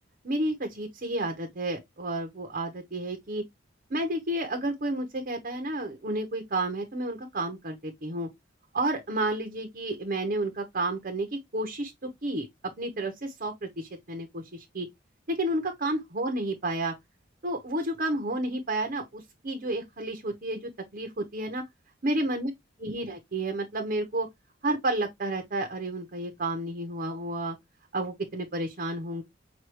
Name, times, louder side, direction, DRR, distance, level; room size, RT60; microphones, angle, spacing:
voice 1, 0.2-3.4 3.9-8.3 8.7-11.3 11.5-12.5 12.8-14.9 15.3-16.9 17.4-21.6 22.0-22.5 22.8-24.3 24.6-27.6 27.9-29.2, right 1 dB, 45° right, 1.0 m, -31 dB
6.3 x 2.6 x 3.0 m
head